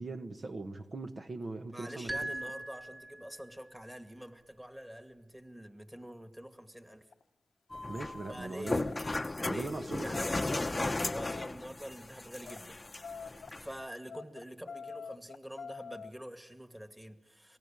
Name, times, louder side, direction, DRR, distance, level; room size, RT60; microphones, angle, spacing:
voice 1, 0.0-2.3 7.9-8.9 9.5-10.2, right 2 dB, 55° right, 1.4 m, -40 dB
voice 2, 1.7-7.1 8.3-8.8 9.4-9.7 10.0-12.8 13.5-17.6, equal, 10° right, 2.2 m, -46 dB
sound 1, 2.1-3.6, right 1 dB, 25° right, 2.4 m, -40 dB
sound 2, 6.9-7.2 7.8-8.0 8.6-9.0 9.7-11.7 12.3-12.6 13.0-13.6 14.1-16.1, left 5 dB, 85° left, 0.9 m, -45 dB
sound 3, 7.7-13.7, left 2 dB, 35° left, 0.8 m, -36 dB
28.5 x 19.5 x 8.9 m
cardioid pair, 45°, 0 cm